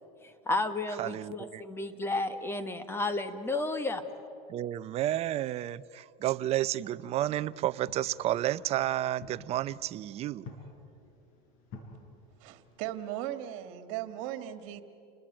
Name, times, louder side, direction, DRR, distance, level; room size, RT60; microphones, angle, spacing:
voice 1, 0.4-4.0, left 2 dB, 15° left, 1.5 m, -32 dB
voice 2, 1.0-1.6 4.5-10.5, right 13 dB, 35° right, 0.6 m, -31 dB
sound 1, 7.1-12.8, left 3 dB, 55° left, 5.5 m, -52 dB
voice 3, 12.4-14.8, right 12 dB, 70° right, 2.0 m, -37 dB
29.5 x 21.0 x 8.8 m
supercardioid pair, 135°, 17 cm